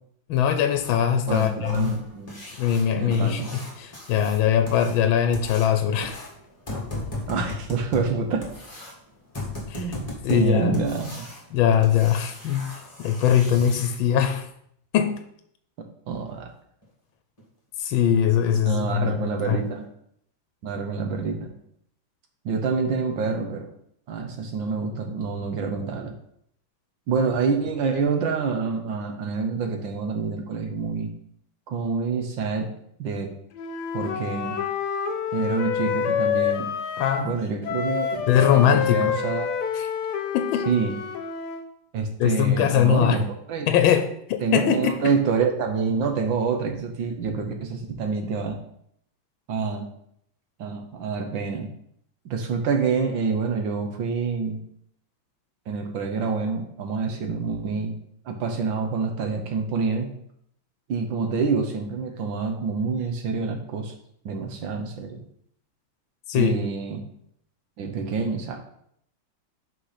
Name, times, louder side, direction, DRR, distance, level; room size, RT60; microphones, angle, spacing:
voice 1, 0.3-1.9 2.6-6.2 9.7-9.9 10.2-10.8 11.5-14.5 14.9-15.2 17.8-19.6 37.0-37.4 38.3-39.1 39.7-39.9 40.3-40.7 42.2-43.2 43.7-45.1 66.3-66.6, left 9 dB, 85° left, 8 dB, 1.4 m, -22 dB
sound 1, 0.8-14.0 16.3-16.4 16.8-16.9 17.4-17.5 18.0-18.1 18.5-18.7 19.1-19.2 19.6-19.7, left 2 dB, 20° left, 1.8 m, -38 dB
voice 2, 1.3-2.4 3.0-3.5 7.3-8.5 9.7-11.3 16.1-16.5 18.7-19.9 20.6-21.5 22.4-23.7 24.1-26.2 27.1-31.1 31.7-32.7 33.0-33.3 33.9-34.6 35.3-36.7 37.2-39.5 40.7-40.9 41.9-43.7 44.4-48.6 49.5-49.9 50.6-51.7 52.2-54.6 55.7-58.0 58.2-60.1 60.9-63.9 64.2-65.2 66.4-67.0 67.8-68.6, right 5 dB, 75° right, 4 dB, 1.7 m, -27 dB
Wind instrument woodwind instrument, 33.6-37.3 37.6-41.7, left 8 dB, 65° left, 1.3 m, -28 dB
6.4 x 4.9 x 5.7 m, 0.70 s
omnidirectional pair, 2.1 m